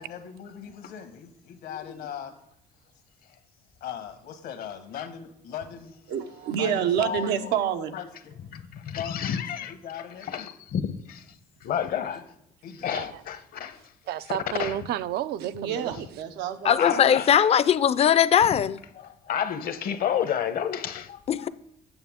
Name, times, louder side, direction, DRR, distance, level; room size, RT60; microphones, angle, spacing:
voice 1, 0.0-2.3 3.8-5.9 6.5-7.6 7.9-8.3 8.9-10.5 11.8-12.2 12.6-13.1, left 8 dB, 80° left, 1.4 m, -39 dB
voice 2, 1.7-2.1 5.0-5.1 8.5-9.7 10.2-11.2 11.6-12.2 12.8-13.8 14.6-14.8 16.8-17.3 18.0-18.1 19.0-21.1, left 8 dB, 60° left, 0.9 m, -30 dB
voice 3, 6.1-7.9 15.4-17.2, right 8 dB, 90° right, 0.8 m, -28 dB
voice 4, 12.9-13.2 14.1-16.1, right 11 dB, 70° right, 0.4 m, -31 dB
voice 5, 16.6-18.8 21.3-21.5, left 9 dB, 35° left, 0.4 m, -20 dB
8.9 x 7.0 x 3.6 m
cardioid pair, 110°, 17 cm